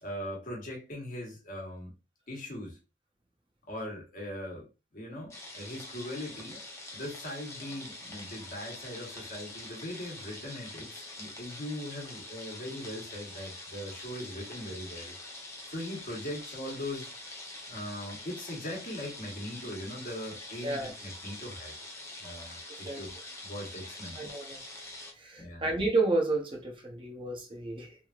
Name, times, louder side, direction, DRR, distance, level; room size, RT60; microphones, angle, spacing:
voice 1, 0.0-1.9 2.3-2.8 3.7-4.7 4.9-6.6 6.9-15.1 15.7-17.1 17.7-21.8 22.2-23.1 23.4-24.2 25.4-25.6, left 1 dB, 45° left, 1.2 m, -40 dB
sound 1, 5.3-25.1, left 2 dB, 15° left, 0.8 m, -45 dB
voice 2, 22.7-23.0 24.2-24.6 25.2-28.0, right 2 dB, 30° right, 0.6 m, -31 dB
3.2 x 2.6 x 2.3 m
head